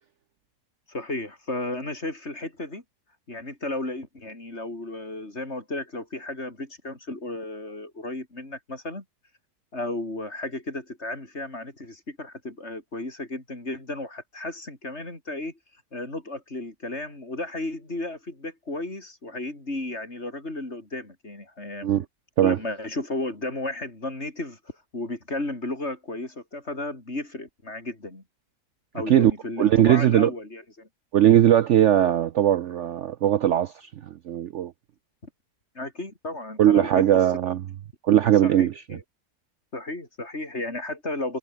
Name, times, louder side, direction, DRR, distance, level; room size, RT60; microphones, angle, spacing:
voice 1, 0.9-2.8 3.3-9.0 9.7-15.5 15.9-22.0 22.4-24.6 24.9-28.2 28.9-30.9 35.8-37.2 38.4-39.0 39.7-41.4, left 2 dB, 45° left, 5.3 m, -34 dB
voice 2, 29.6-30.3 31.1-34.7 36.6-37.6 38.0-38.7, right 11 dB, 60° right, 0.8 m, -19 dB
omnidirectional pair, 1.6 m